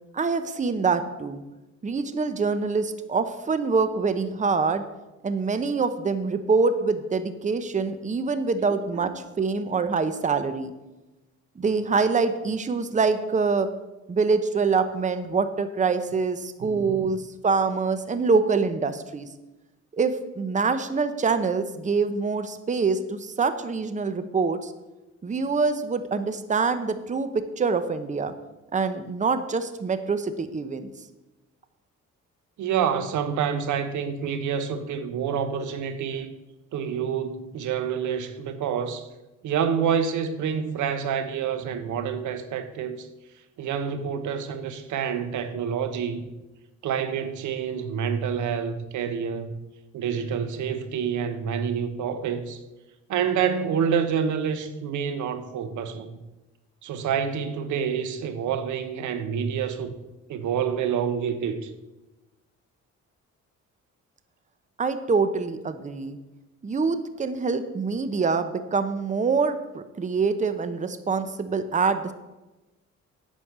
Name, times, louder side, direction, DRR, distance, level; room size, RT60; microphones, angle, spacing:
voice 1, 0.1-1.4 1.8-4.8 5.2-10.7 11.6-13.7 14.1-19.3 19.9-24.7 25.2-28.3 28.7-30.9 64.8-66.2 66.6-72.1, right 4 dB, 25° right, 0.8 m, -25 dB
voice 2, 16.6-17.0 32.6-36.3 36.7-39.1 39.4-43.1 43.6-46.3 46.8-49.5 49.9-52.6 53.1-56.2 56.8-59.9 60.3-61.7, right 7 dB, 80° right, 1.0 m, -27 dB
8.6 x 6.4 x 7.3 m
cardioid pair, 90°, 30 cm